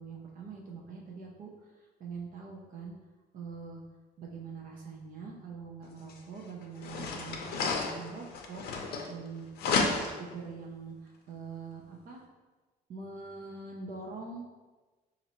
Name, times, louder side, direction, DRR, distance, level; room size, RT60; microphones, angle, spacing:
voice 1, 0.0-2.9 3.3-3.8 4.2-9.4 9.7-12.2 12.9-14.4, right 4 dB, 55° right, -1 dB, 0.6 m, -44 dB
sound 1, 6.1-6.2 6.8-9.3 9.6-10.3, left 4 dB, 65° left, 0.6 m, -32 dB
4.1 x 2.6 x 2.9 m, 1.2 s
cardioid pair, 110°, 17 cm